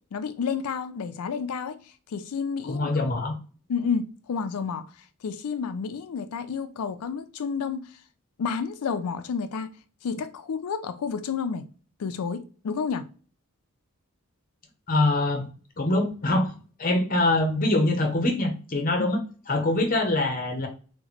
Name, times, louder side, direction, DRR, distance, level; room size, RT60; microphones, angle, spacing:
voice 1, 0.1-1.8 2.1-2.9 3.7-4.8 5.2-7.9 8.4-9.7 10.0-11.6 12.0-13.1 19.0-19.1, left 6 dB, 90° left, 0.4 m, -30 dB
voice 2, 2.7-3.4 14.9-15.5 15.8-16.5 16.8-19.2 19.5-20.7, left 2 dB, 40° left, 0.7 m, -24 dB
2.9 x 2.2 x 4.0 m
head